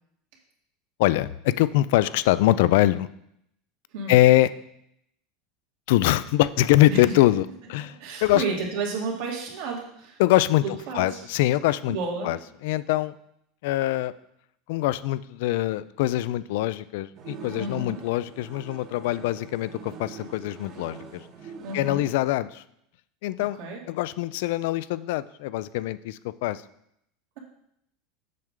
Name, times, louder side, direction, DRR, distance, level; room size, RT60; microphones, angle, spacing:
voice 1, 1.0-3.1 4.1-4.5 5.9-8.4 10.2-12.0 12.2-13.1 13.6-14.1 14.7-21.2 21.7-22.6 23.2-23.6 23.9-26.6, left 15 dB, 70° left, 16 dB, 0.3 m, -23 dB
voice 2, 7.8-10.2 10.6-11.2 11.9-12.3 17.6-18.0 21.6-22.0 23.6-23.8, right 4 dB, 70° right, -1 dB, 2.3 m, -31 dB
sound 1, 17.2-22.1, right 6 dB, 40° right, 1.1 m, -44 dB
7.6 x 6.5 x 3.7 m, 0.75 s
supercardioid pair, 140°, 0 cm